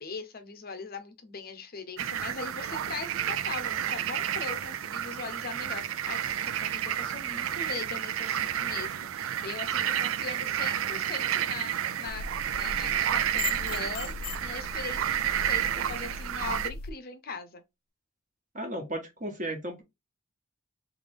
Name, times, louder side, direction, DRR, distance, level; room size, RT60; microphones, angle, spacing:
voice 1, 0.0-17.6, left 4 dB, 45° left, 0.7 m, -40 dB
sound 1, 2.0-16.7, right 10 dB, 70° right, 0.4 m, -31 dB
sound 2, 12.1-16.9, left 4 dB, 80° left, 0.4 m, -39 dB
voice 2, 18.5-19.8, right 1 dB, 40° right, 1.3 m, -35 dB
3.4 x 3.2 x 3.5 m
head